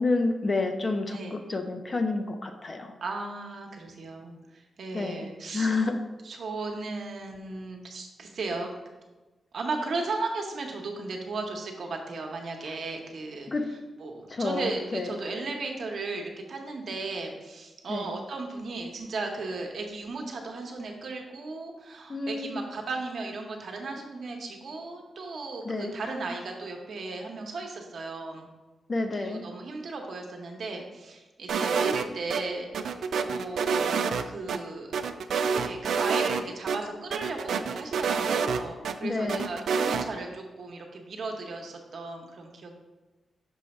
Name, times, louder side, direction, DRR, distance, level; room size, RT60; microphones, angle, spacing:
voice 1, 0.0-2.9 4.9-5.3 5.5-6.0 13.5-13.7 14.3-15.1 17.9-18.1 22.1-22.6 25.7-25.9 28.9-29.4 39.0-39.5, left 3 dB, 30° left, 6 dB, 0.5 m, -29 dB
voice 2, 1.1-1.4 3.0-5.7 6.2-8.7 9.5-13.5 14.0-28.5 29.1-34.9 35.6-42.8, right 3 dB, 55° right, 2 dB, 0.9 m, -36 dB
sound 1, 31.5-32.4 32.7-34.6 34.9-36.4 36.7-36.8 37.1-38.9 39.3-40.1, right 6 dB, 80° right, 0.3 m, -27 dB
6.2 x 3.4 x 5.3 m, 1.2 s
wide cardioid pair, 160°, 0 cm